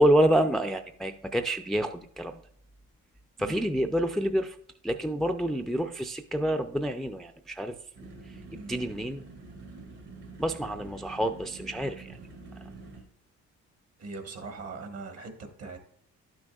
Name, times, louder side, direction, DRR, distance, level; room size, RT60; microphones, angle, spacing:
voice 1, 0.0-2.4 3.4-4.6 4.8-7.8 8.7-9.2 10.4-12.2, right 1 dB, ahead, 6 dB, 0.4 m, -27 dB
sound 1, 7.9-13.0, right 3 dB, 75° right, 2.4 m, -46 dB
voice 2, 8.5-8.8 14.0-15.8, right 3 dB, 55° right, 6 dB, 1.3 m, -41 dB
11.5 x 6.2 x 2.3 m, 0.64 s
cardioid pair, 90°, 30 cm